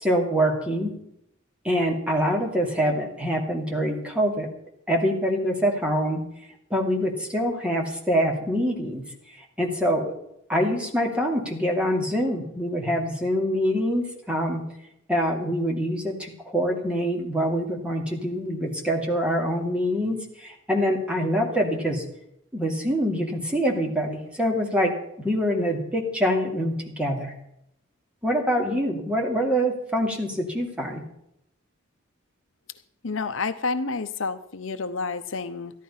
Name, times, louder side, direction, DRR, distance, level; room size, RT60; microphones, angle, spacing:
voice 1, 0.0-0.9 1.6-4.5 4.9-6.2 6.7-9.0 9.6-10.1 10.5-14.6 15.1-22.0 22.5-24.9 25.2-27.3 28.2-31.0, equal, 5° right, 0 dB, 2.6 m, -25 dB
voice 2, 33.0-35.7, left 4 dB, 65° left, 10 dB, 0.8 m, -29 dB
14.0 x 11.5 x 5.6 m, 0.77 s
head